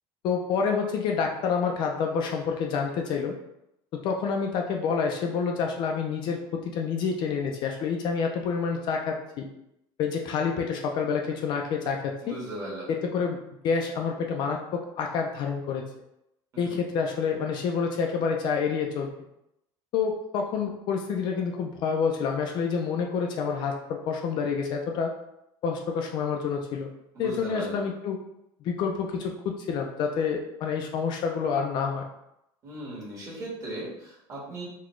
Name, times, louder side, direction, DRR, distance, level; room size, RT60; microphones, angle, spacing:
voice 1, 0.2-3.3 3.9-9.5 10.0-12.3 12.9-13.4 13.6-15.8 16.6-19.1 19.9-25.1 25.6-26.9 27.2-28.2 28.6-32.1, left 6 dB, 45° left, 1 dB, 0.4 m, -28 dB
voice 2, 12.2-12.9 16.5-16.8 27.1-27.8 32.6-34.6, right 1 dB, 30° right, -6 dB, 1.4 m, -37 dB
4.0 x 2.2 x 3.1 m, 0.83 s
cardioid pair, 155°, 11 cm